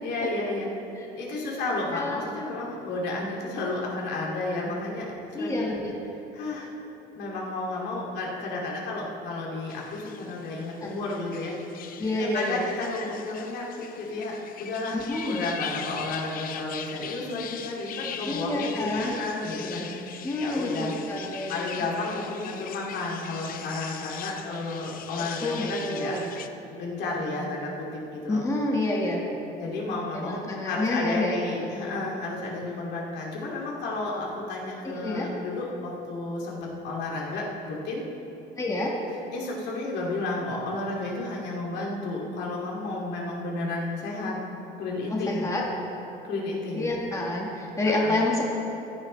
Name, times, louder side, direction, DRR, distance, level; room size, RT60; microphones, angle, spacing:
voice 1, 0.0-0.7 1.1-5.7 6.3-6.7 7.1-11.6 12.2-20.0 20.4-20.9 21.5-26.2 26.8-27.9 28.1-28.4 29.6-38.0 39.3-44.4 44.8-45.5 46.2-46.9 47.8-48.2, left 2 dB, 70° left, -3 dB, 2.5 m, -32 dB
voice 2, 1.9-2.2 5.3-5.9 10.8-10.9 12.0-12.6 14.9-15.4 18.2-19.1 20.2-21.8 25.4-26.3 28.3-29.2 30.1-31.7 34.9-35.3 38.6-38.9 45.1-45.6 46.8-48.5, left 2 dB, 15° left, -2 dB, 1.6 m, -28 dB
sound 1, 9.7-26.5, left 9 dB, 50° left, 0.7 m, -41 dB
16.0 x 11.5 x 3.3 m, 3.0 s
cardioid pair, 130°, 18 cm